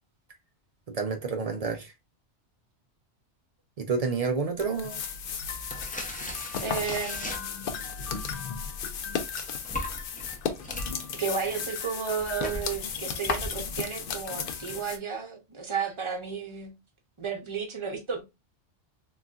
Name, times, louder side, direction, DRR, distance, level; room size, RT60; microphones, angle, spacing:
voice 1, 0.9-1.9 3.8-5.0, right 5 dB, 60° right, 0.4 m, -29 dB
sound 1, 4.6-15.0, left 6 dB, 60° left, 0.6 m, -35 dB
sound 2, 5.7-7.9 8.6-13.8, left 1 dB, 10° left, 0.4 m, -39 dB
voice 2, 6.6-7.8 11.1-16.7 17.2-18.2, right 6 dB, 30° right, 0.7 m, -33 dB
3.9 x 2.3 x 2.3 m
omnidirectional pair, 1.2 m